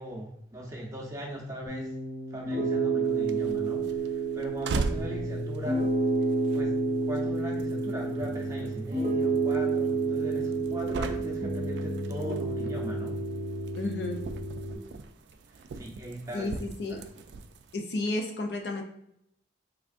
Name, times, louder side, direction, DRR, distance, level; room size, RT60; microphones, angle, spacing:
voice 1, 0.0-2.0 2.3-5.9 6.5-13.2 15.5-16.6 16.9-17.0, right 1 dB, 20° right, -2 dB, 0.7 m, -39 dB
Piano, 1.7-14.7, right 3 dB, 40° right, 1.0 m, -30 dB
sound 1, 3.0-17.7, right 3 dB, 70° right, 0.3 m, -40 dB
voice 2, 13.7-14.2 16.3-17.0 17.7-18.8, left 2 dB, 65° left, 3 dB, 0.5 m, -32 dB
3.6 x 3.3 x 2.5 m, 0.75 s
head